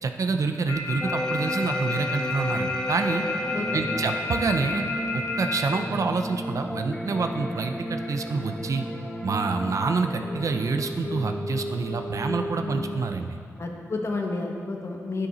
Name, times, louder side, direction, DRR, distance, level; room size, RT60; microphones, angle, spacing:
voice 1, 0.0-3.2 3.7-4.8 5.1-8.8 9.2-13.4, right 4 dB, 60° right, 6 dB, 0.6 m, -27 dB
sound 1, 0.7-5.6, left 4 dB, 90° left, 2.1 m, -30 dB
sound 2, 1.0-13.1, equal, 10° left, 0.8 m, -33 dB
voice 2, 13.6-15.3, left 3 dB, 50° left, 1 dB, 1.3 m, -30 dB
9.8 x 9.7 x 4.1 m, 2.3 s
wide cardioid pair, 85°, 6 cm